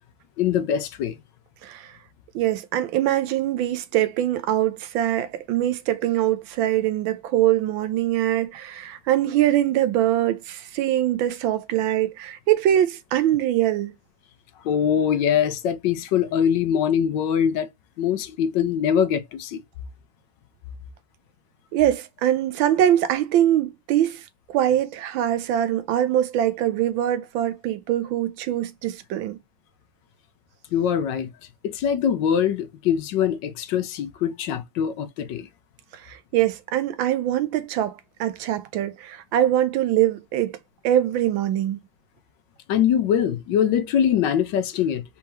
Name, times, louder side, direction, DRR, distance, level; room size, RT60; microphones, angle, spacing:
voice 1, 0.4-1.1 14.6-17.7 18.0-19.6 30.7-31.3 31.6-35.5 42.7-45.0, left 8 dB, 75° left, 1.3 m, -23 dB
voice 2, 1.6-1.9 2.3-13.9 21.7-29.4 35.9-40.5 40.8-41.8, right 12 dB, 85° right, 1.4 m, -23 dB
4.4 x 3.5 x 3.0 m
omnidirectional pair, 2.1 m